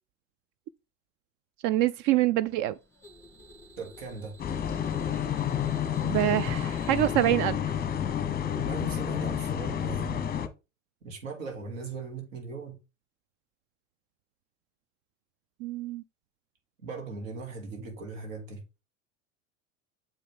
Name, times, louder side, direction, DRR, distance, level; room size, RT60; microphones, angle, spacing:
voice 1, 1.6-2.8 6.0-7.6 15.6-16.0, right 14 dB, 50° right, 0.5 m, -25 dB
sound 1, 2.5-7.3, equal, 5° left, 2.5 m, -52 dB
voice 2, 3.8-4.3 8.5-10.3 11.0-12.8 16.8-18.6, right 4 dB, 75° right, 2.7 m, -39 dB
sound 2, 4.4-10.5, left 9 dB, 25° left, 1.0 m, -30 dB
7.1 x 5.4 x 3.6 m
hypercardioid pair, 85°, 39 cm